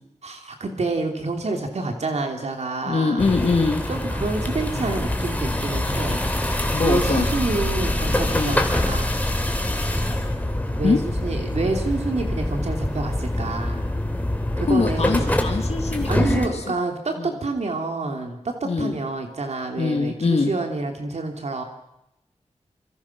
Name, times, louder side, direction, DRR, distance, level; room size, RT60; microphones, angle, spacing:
voice 1, 0.2-3.2 3.9-6.3 6.8-9.1 10.8-13.8 14.6-15.3 16.1-21.6, right 3 dB, 65° right, 4 dB, 3.0 m, -28 dB
voice 2, 2.8-3.8 6.7-7.3 8.3-8.6 10.8-11.0 14.7-16.6 17.2-17.3 18.6-19.0 19.8-20.5, left 4 dB, 60° left, 2 dB, 2.4 m, -23 dB
sound 1, 3.2-16.5, left 1 dB, 15° left, 3.1 m, -25 dB
26.5 x 24.0 x 6.0 m, 0.86 s
wide cardioid pair, 100°, 12 cm